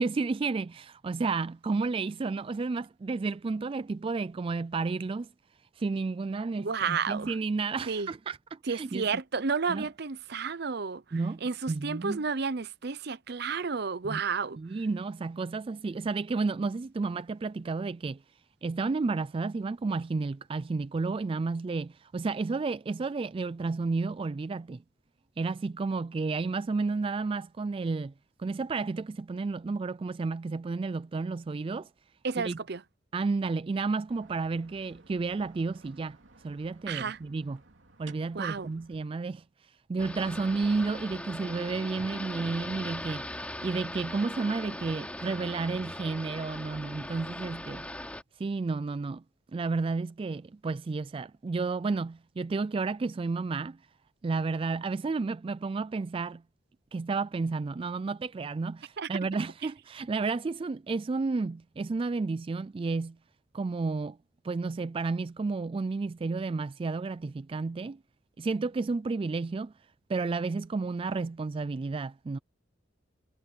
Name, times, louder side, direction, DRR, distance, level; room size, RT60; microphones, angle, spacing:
voice 1, 0.0-5.3 5.8-9.1 9.7-9.9 11.1-11.4 11.7-12.2 14.0-14.2 14.6-18.2 18.6-24.8 25.4-28.1 28.4-31.9 32.4-32.6 33.1-36.2 36.4-37.6 38.0-43.3 43.6-47.9 48.4-49.2 49.5-53.8 54.2-56.4 56.9-63.2 63.5-64.2 64.4-68.0 68.4-69.7 70.1-72.4, right 4 dB, 30° right, 0.3 m, -31 dB
voice 2, 6.6-7.3 7.9-8.1 8.7-11.0 11.4-14.6 32.2-32.8 36.9-37.2 38.3-38.7 59.0-59.1, right 5 dB, 60° right, 0.7 m, -31 dB
sound 1, 34.1-39.1, right 3 dB, 85° right, 2.8 m, -57 dB
sound 2, 40.0-48.2, left 1 dB, 5° left, 3.0 m, -40 dB
head